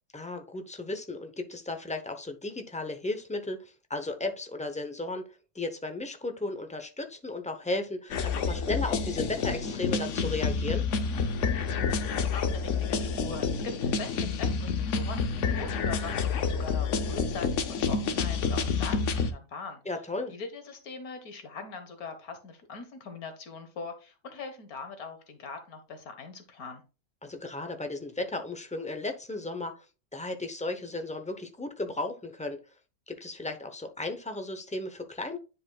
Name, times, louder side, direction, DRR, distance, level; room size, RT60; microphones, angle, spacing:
voice 1, 0.1-5.3 5.5-10.8 19.9-20.3 27.2-29.8 30.1-32.6 33.1-35.4, left 2 dB, 10° left, 0.5 m, -35 dB
sound 1, 8.1-19.3, left 5 dB, 60° left, 1.0 m, -29 dB
voice 2, 11.9-19.8 20.3-26.8, left 4 dB, 80° left, 1.7 m, -42 dB
10.0 x 5.0 x 2.3 m
omnidirectional pair, 1.5 m